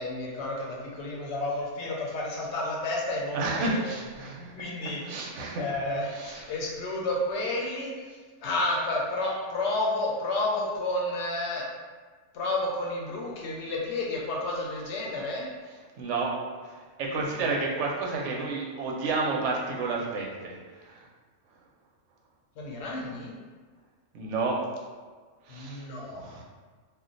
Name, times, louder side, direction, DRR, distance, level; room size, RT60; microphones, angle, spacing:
voice 1, 0.0-3.8 4.2-7.9 8.4-11.6 12.3-15.5 22.6-23.3 25.5-26.3, left 2 dB, 70° left, -2 dB, 0.8 m, -31 dB
voice 2, 3.3-4.5 4.8-5.6 6.1-6.5 16.0-16.3 16.6-21.1 24.1-24.6 25.5-25.9 26.1-26.4, right 3 dB, 75° right, -2 dB, 0.9 m, -31 dB
2.4 x 2.1 x 3.7 m, 1.4 s
omnidirectional pair, 1.3 m